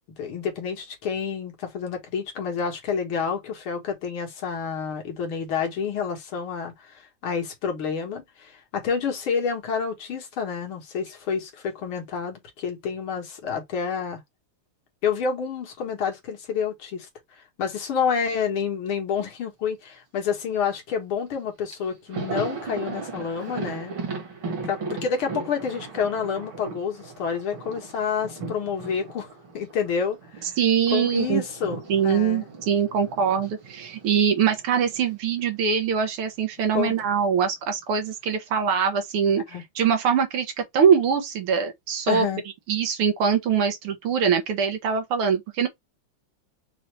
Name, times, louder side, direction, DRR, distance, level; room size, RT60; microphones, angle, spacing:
voice 1, 0.2-14.2 15.0-17.1 17.6-23.9 24.6-29.3 29.5-30.6 30.9-32.5 36.7-36.9 39.5-39.6 42.1-42.4, left 6 dB, 75° left, 2.2 m, -29 dB
Thunder, 21.3-21.4 21.7-30.5 30.8-35.1 35.4-35.5 36.7-37.4, right 4 dB, 65° right, 2.8 m, -37 dB
voice 2, 30.6-31.4 31.9-42.3 42.7-45.7, right 7 dB, 80° right, 2.0 m, -23 dB
5.6 x 2.6 x 3.2 m
omnidirectional pair, 2.4 m